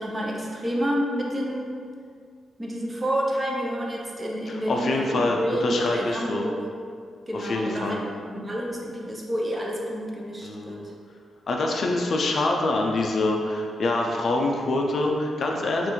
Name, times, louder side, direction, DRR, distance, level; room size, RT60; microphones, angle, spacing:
voice 1, 0.0-1.8 2.6-6.6 7.3-8.0 8.3-10.9, equal, 15° right, -2 dB, 0.5 m, -29 dB
voice 2, 4.5-6.4 7.3-8.0 10.4-10.8 11.5-15.9, left 2 dB, 45° left, 1 dB, 0.4 m, -25 dB
5.5 x 2.5 x 3.0 m, 2.2 s
wide cardioid pair, 165°, 0 cm